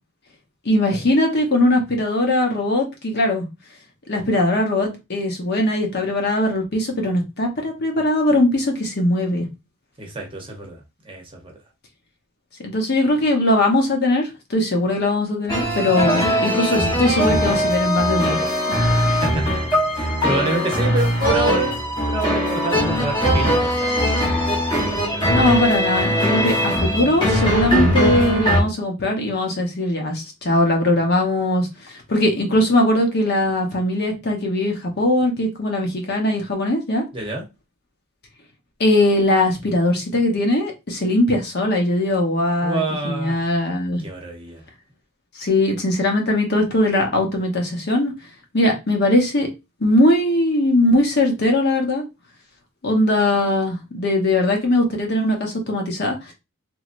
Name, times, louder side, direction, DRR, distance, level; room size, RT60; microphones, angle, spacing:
voice 1, 0.6-3.5 4.1-9.5 12.6-18.4 19.0-19.2 25.3-37.0 38.8-44.0 45.4-48.1 48.5-49.5 49.8-52.0 52.8-56.3, left 1 dB, 50° left, 2 dB, 0.8 m, -20 dB
voice 2, 10.0-11.5 16.0-16.1 19.0-19.5 19.9-24.2 24.7-25.6 37.1-37.4 42.6-43.4 44.0-44.6, right 2 dB, 25° right, 1 dB, 0.8 m, -28 dB
Passion Tango, 15.5-28.6, equal, 20° left, 1.1 m, -20 dB
3.0 x 2.7 x 2.5 m, 0.24 s
head